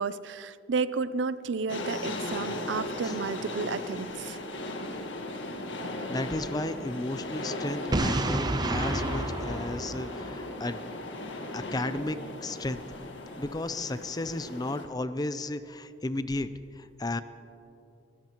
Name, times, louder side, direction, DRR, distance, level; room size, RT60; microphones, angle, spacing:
voice 1, 0.0-4.4, right 4 dB, 80° right, 15 dB, 0.5 m, -32 dB
sound 1, 1.7-14.8, left 2 dB, 90° left, 1.6 m, -37 dB
voice 2, 6.1-10.9 11.5-12.8 13.4-16.5 16.8-17.2, left 2 dB, 20° left, 12 dB, 0.5 m, -34 dB
Boom, 7.9-10.8, right 2 dB, 25° right, 0.6 m, -30 dB
24.0 x 17.0 x 3.0 m, 2.7 s
head